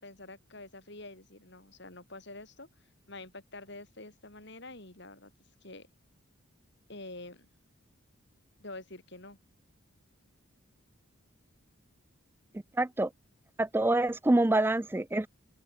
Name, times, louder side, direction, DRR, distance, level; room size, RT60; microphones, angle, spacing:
voice 1, 0.0-2.7 3.1-5.3 5.6-5.9 6.9-7.5 8.6-9.4, left 2 dB, 55° left, 5.1 m, -47 dB
voice 2, 12.8-13.1 13.6-15.3, right 2 dB, 10° right, 0.3 m, -26 dB
open air
head